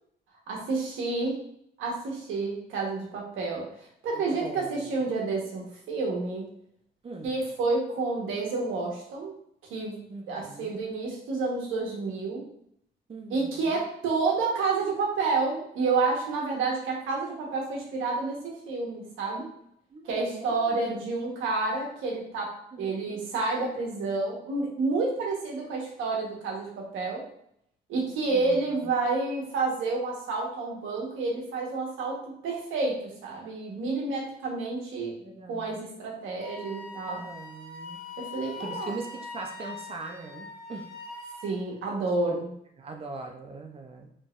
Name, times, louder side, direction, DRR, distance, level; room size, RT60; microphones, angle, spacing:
voice 1, 0.5-1.4 1.8-3.7 4.0-6.4 7.2-9.3 9.7-9.9 10.3-12.4 13.3-19.4 20.1-27.2 27.9-32.2 32.4-33.0 33.2-35.1 35.5-37.2 38.2-39.0 41.4-42.5, right 3 dB, 85° right, -2 dB, 1.3 m, -29 dB
voice 2, 4.1-4.7 7.0-7.4 10.1-10.8 13.1-13.8 19.9-21.0 22.7-23.2 28.3-28.8 35.2-35.9 37.1-38.0 38.6-39.1 39.3-40.9 42.2-42.5 42.8-44.1, right 3 dB, 30° right, 2 dB, 0.6 m, -41 dB
Wind instrument woodwind instrument, 36.4-41.5, left 3 dB, 50° left, 1.0 m, -42 dB
4.0 x 3.5 x 2.5 m, 0.70 s
cardioid pair, 90°, 20 cm